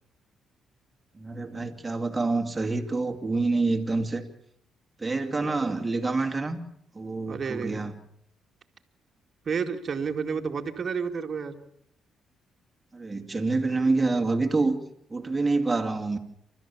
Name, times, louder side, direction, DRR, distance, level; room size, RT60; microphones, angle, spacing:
voice 1, 1.1-4.2 5.0-6.6 6.9-7.9 12.9-14.8 15.1-16.2, right 3 dB, 20° right, 4 dB, 2.7 m, -27 dB
voice 2, 5.4-5.8 7.3-7.8 9.5-11.6, right 6 dB, 45° right, 5 dB, 2.2 m, -31 dB
28.5 x 13.5 x 7.2 m, 0.71 s
cardioid pair, 90°, 0 cm